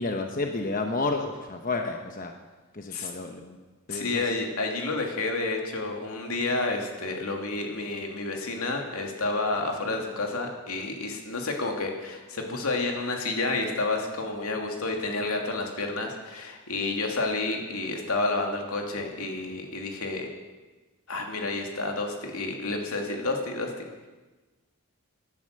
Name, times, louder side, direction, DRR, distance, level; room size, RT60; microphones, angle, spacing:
voice 1, 0.0-2.3 2.7-3.6 3.9-4.2, left 3 dB, 40° left, 4 dB, 1.0 m, -30 dB
voice 2, 3.9-20.3 21.1-24.1, left 3 dB, 80° left, 2 dB, 2.6 m, -30 dB
17.5 x 11.0 x 6.7 m, 1.2 s
head